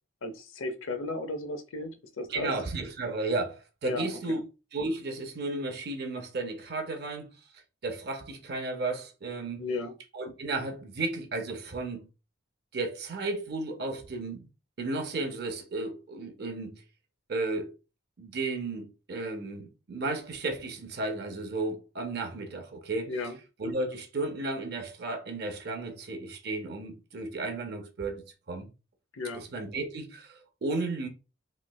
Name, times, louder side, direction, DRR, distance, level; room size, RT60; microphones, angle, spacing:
voice 1, 0.2-1.9 2.2-2.5 3.8-4.4 9.6-9.9 23.1-23.4 29.1-29.4, left 2 dB, 85° left, 0.6 m, -34 dB
voice 2, 2.3-4.4 4.7-7.3 7.8-9.6 10.1-12.1 12.7-14.5 14.8-16.8 17.3-17.7 18.2-23.1 23.6-28.7 29.3-31.1, right 2 dB, 55° right, 0.6 m, -34 dB
3.1 x 3.1 x 2.2 m
head